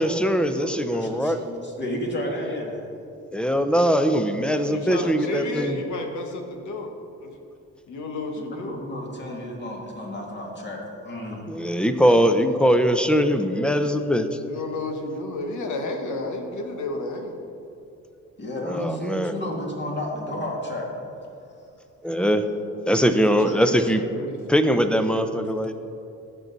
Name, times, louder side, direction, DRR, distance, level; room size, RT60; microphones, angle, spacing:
voice 1, 0.0-1.4 3.3-5.8 11.5-14.3 18.6-19.3 22.0-22.4 22.9-24.0 24.5-25.7, equal, 5° left, 8 dB, 0.7 m, -21 dB
voice 2, 0.6-2.8 8.4-11.5 18.4-20.9, left 1 dB, 35° left, -1 dB, 2.3 m, -32 dB
voice 3, 4.5-6.9 7.2-7.3 7.9-8.8 14.4-17.4 22.9-23.2 23.5-23.8 24.1-24.4, left 2 dB, 75° left, 3 dB, 1.4 m, -31 dB
15.5 x 6.2 x 4.1 m, 2.6 s
cardioid pair, 90°, 30 cm